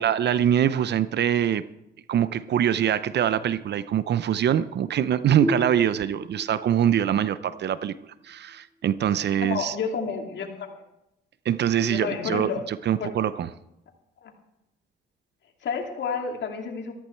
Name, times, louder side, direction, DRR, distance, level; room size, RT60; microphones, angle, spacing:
voice 1, 0.0-1.6 2.1-7.9 8.2-9.7 11.5-13.5, right 10 dB, 60° right, 15 dB, 0.6 m, -24 dB
sound 1, 5.4-8.8, equal, 15° right, 3.2 m, -35 dB
voice 2, 9.3-10.7 11.8-12.6 13.0-13.1 14.2-14.3 15.6-16.9, left 5 dB, 65° left, 3 dB, 2.6 m, -30 dB
14.0 x 14.0 x 4.5 m, 0.87 s
cardioid pair, 90°, 20 cm